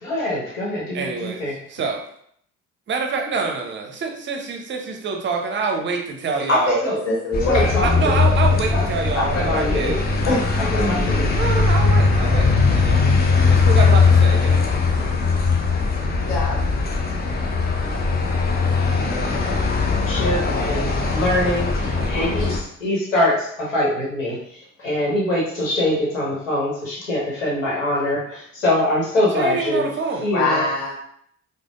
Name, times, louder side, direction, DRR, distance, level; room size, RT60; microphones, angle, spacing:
voice 1, 0.0-1.5 6.5-7.0 7.5-8.2 8.7-8.8 9.2-10.0 10.2-11.3 20.1-24.4 24.8-29.9 30.2-30.6, left 1 dB, 80° left, -4 dB, 1.0 m, -23 dB
voice 2, 0.9-2.0 2.9-6.8 7.8-10.0 11.3-13.1 13.5-14.7 21.8-22.2 29.3-30.3, right 4 dB, 30° right, 3 dB, 0.6 m, -26 dB
voice 3, 6.3-6.8 7.0-7.7 10.2-11.0 16.2-16.6 20.2-20.7 21.7-21.8 22.1-22.6 30.3-30.9, left 2 dB, 45° left, -4 dB, 1.4 m, -25 dB
sound 1, 7.3-22.6, left 4 dB, 25° left, 0.6 m, -19 dB
4.9 x 2.1 x 2.4 m, 0.66 s
figure-of-eight pair, 50°, 39 cm